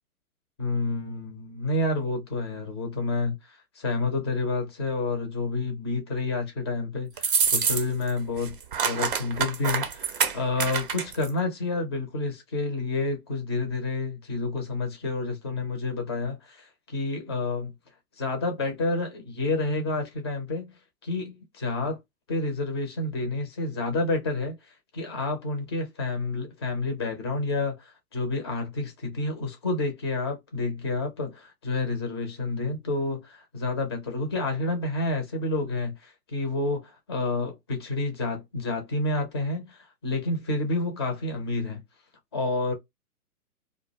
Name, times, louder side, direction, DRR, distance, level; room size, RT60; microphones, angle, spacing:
voice 1, 0.6-17.7 18.2-22.0 22.3-41.8 42.3-42.7, left 2 dB, 20° left, 0.4 m, -29 dB
sound 1, 7.2-8.1 8.4-11.3, right 6 dB, 35° right, 0.5 m, -26 dB
2.3 x 2.1 x 2.9 m
hypercardioid pair, 130°, 45 cm